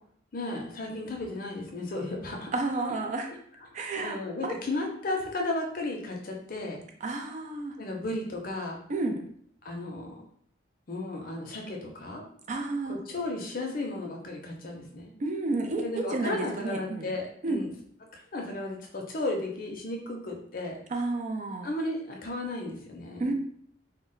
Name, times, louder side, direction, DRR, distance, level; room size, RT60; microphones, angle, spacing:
voice 1, 0.3-2.5 3.7-6.8 7.8-8.8 9.6-10.2 10.9-12.2 12.9-15.1 15.8-17.7 18.1-20.8 21.6-23.3, left 2 dB, 50° left, 1 dB, 0.5 m, -34 dB
voice 2, 2.5-3.3 3.7-4.2 4.4-4.5 7.0-7.8 8.9-9.2 12.5-13.0 15.2-17.1 17.4-17.6 20.9-21.7 23.2-23.3, right 2 dB, 40° right, 4 dB, 0.3 m, -31 dB
2.1 x 2.0 x 3.7 m, 0.64 s
head